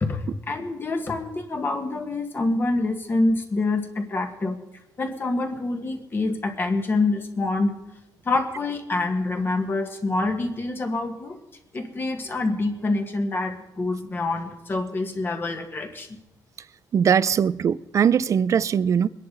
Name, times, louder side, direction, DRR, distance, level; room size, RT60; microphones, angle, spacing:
voice 1, 0.0-4.6 5.0-7.7 8.2-11.4 11.7-16.1, left 2 dB, 30° left, 1.6 m, -26 dB
voice 2, 16.9-19.1, right 7 dB, 45° right, 0.4 m, -20 dB
23.0 x 10.5 x 4.0 m
cardioid pair, 140°, 8 cm